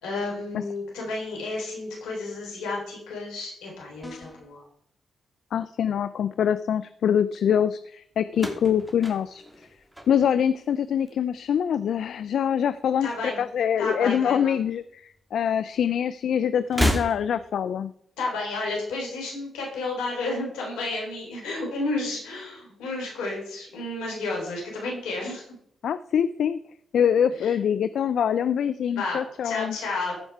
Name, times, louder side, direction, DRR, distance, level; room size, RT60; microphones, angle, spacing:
voice 1, 0.0-4.6 13.0-13.4 13.8-14.6 18.2-25.6 27.4-27.5 28.9-29.2 29.4-30.1, left 2 dB, 85° left, -1 dB, 3.7 m, -31 dB
sound 1, 4.0-4.6, left 1 dB, 25° left, 2.1 m, -44 dB
voice 2, 5.5-9.4 10.1-17.9 25.8-26.6 26.9-29.8, left 8 dB, 70° left, 13 dB, 0.4 m, -24 dB
sound 2, 8.3-10.7 11.0-11.6 12.6-13.6 13.9-14.0 15.1-15.2 16.6-17.6, equal, 10° right, 2.6 m, -30 dB
15.0 x 5.4 x 4.6 m, 0.68 s
supercardioid pair, 45°, 0 cm